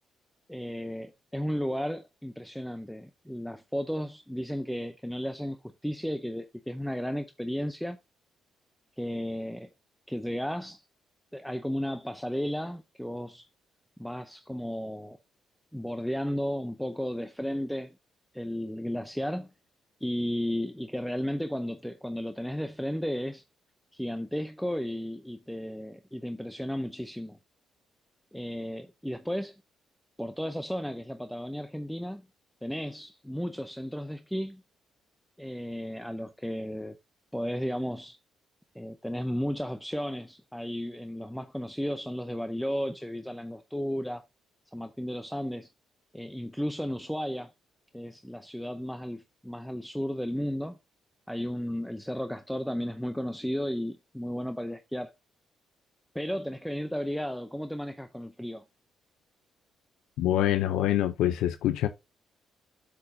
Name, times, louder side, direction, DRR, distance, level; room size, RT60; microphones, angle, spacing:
voice 1, 0.5-5.6 5.8-8.0 9.0-9.7 10.1-10.9 11.3-13.5 14.0-15.2 15.7-18.0 18.3-19.5 20.0-23.4 23.9-27.4 28.3-29.6 30.2-32.2 32.6-34.6 35.4-37.0 37.3-38.2 38.7-44.2 44.7-45.7 46.1-47.5 47.9-50.8 51.3-55.1 56.1-58.6, equal, ahead, 0.6 m, -34 dB
voice 2, 60.2-61.9, left 13 dB, 90° left, 0.5 m, -25 dB
8.3 x 6.8 x 2.6 m
cardioid pair, 90°, 0 cm